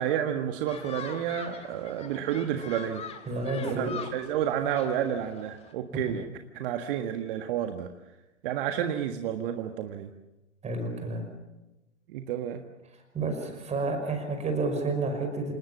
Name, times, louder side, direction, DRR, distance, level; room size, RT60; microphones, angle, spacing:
voice 1, 0.0-3.0 3.6-6.2 6.5-7.9 8.4-10.1 12.1-12.6, right 10 dB, 45° right, 6 dB, 1.6 m, -30 dB
sound 1, 0.7-5.7, left 7 dB, 15° left, 2.0 m, -43 dB
voice 2, 3.3-4.0 10.6-11.2 13.1-15.5, right 3 dB, 15° right, 5 dB, 5.7 m, -30 dB
28.0 x 19.5 x 7.3 m, 1.0 s
figure-of-eight pair, 110°, 37 cm